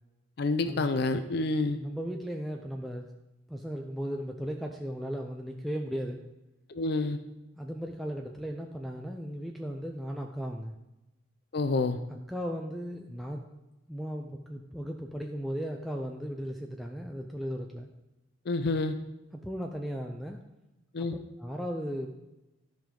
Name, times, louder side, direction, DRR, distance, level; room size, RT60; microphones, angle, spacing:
voice 1, 0.4-1.8 6.7-7.2 11.5-12.0 18.5-19.0 20.9-21.2, left 3 dB, 55° left, 9 dB, 0.5 m, -28 dB
voice 2, 1.7-3.1 3.5-6.2 7.6-10.8 12.3-13.4 13.9-17.9 19.3-20.4 21.0-21.1 21.4-22.1, equal, ahead, 2 dB, 0.4 m, -36 dB
13.0 x 5.2 x 3.7 m, 0.99 s
head